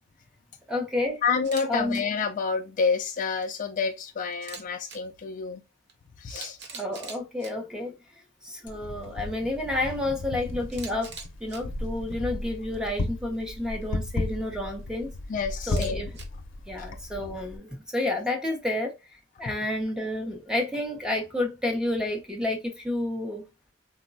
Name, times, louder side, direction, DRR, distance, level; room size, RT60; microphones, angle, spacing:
voice 1, 0.7-1.2 1.7-2.0 6.7-7.9 8.4-11.1 11.4-15.1 15.7-16.2 16.7-18.9 19.4-23.4, left 1 dB, 5° right, 0.7 m, -30 dB
voice 2, 1.2-5.6 6.2-6.6 15.3-16.0 16.8-16.9, left 5 dB, 40° left, 0.3 m, -28 dB
Camera, 1.4-1.7 1.9-2.0 4.3-5.0 5.9-6.0 6.3-7.5 10.7-11.6 15.6-16.2, right 5 dB, 60° right, 0.8 m, -42 dB
Wind, 8.7-17.6, left 2 dB, 80° left, 0.6 m, -35 dB
3.8 x 2.1 x 2.5 m
head